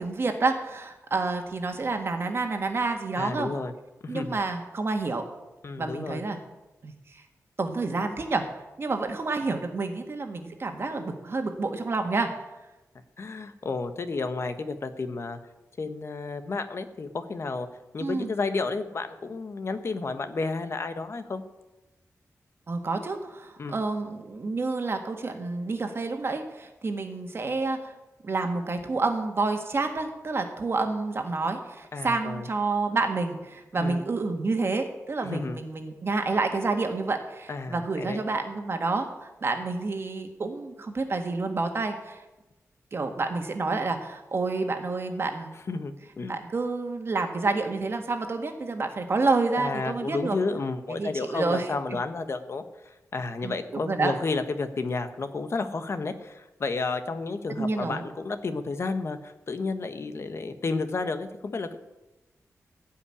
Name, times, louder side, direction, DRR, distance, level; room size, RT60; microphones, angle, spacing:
voice 1, 0.0-3.5 4.1-5.2 5.8-6.4 6.8-7.2 7.6-8.4 8.8-12.3 18.0-18.3 22.7-27.9 28.2-42.2 42.9-45.5 46.3-50.4 50.9-52.0 53.4-53.6 53.8-54.1 57.6-58.0, right 3 dB, 45° right, 5 dB, 1.8 m, -29 dB
voice 2, 3.1-3.7 4.0-4.4 5.6-6.2 13.2-15.4 15.8-17.7 17.9-21.4 23.6-23.8 31.9-32.5 33.8-34.0 35.2-35.6 37.5-38.2 45.7-46.4 49.6-61.7, left 3 dB, 50° left, 9 dB, 1.2 m, -31 dB
17.0 x 5.7 x 9.9 m, 1.0 s
wide cardioid pair, 155°, 6 cm